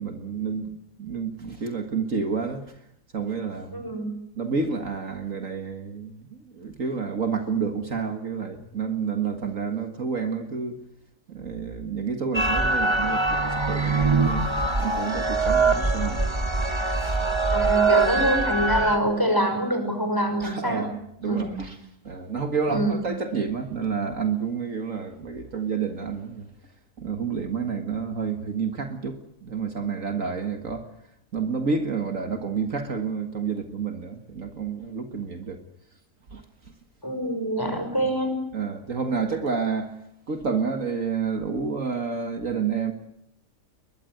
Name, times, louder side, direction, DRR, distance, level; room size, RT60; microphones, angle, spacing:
voice 1, 0.0-2.7 3.1-3.9 4.4-10.8 11.3-16.2 17.0-17.3 20.4-21.8 22.0-26.5 27.0-30.9 31.3-35.6 36.3-36.4 37.7-37.8 38.5-39.9 40.3-42.9, right 5 dB, 55° right, 6 dB, 2.2 m, -29 dB
voice 2, 3.7-4.1 17.5-20.9 21.3-21.5 22.7-23.0 37.0-38.4, right 1 dB, 15° left, 5 dB, 5.8 m, -25 dB
sound 1, 12.3-19.0, right 3 dB, 20° right, 1.9 m, -23 dB
22.5 x 21.0 x 9.3 m, 0.77 s
omnidirectional pair, 1.6 m